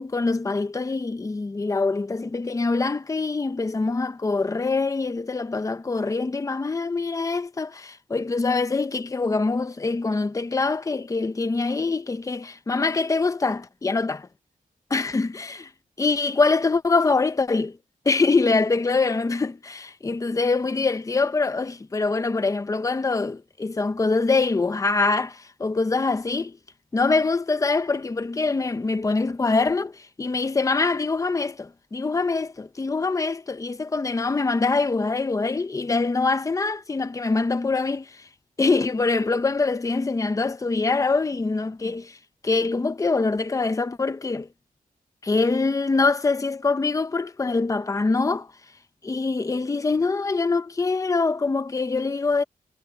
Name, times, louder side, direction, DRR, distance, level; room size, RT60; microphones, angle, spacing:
voice 1, 0.0-14.3 14.9-15.6 16.0-17.8 18.0-26.6 26.9-38.3 38.6-42.2 42.4-44.5 45.2-48.5 49.0-52.4, left 3 dB, 20° left, 0.8 m, -24 dB
wide cardioid pair, 160°, 15 cm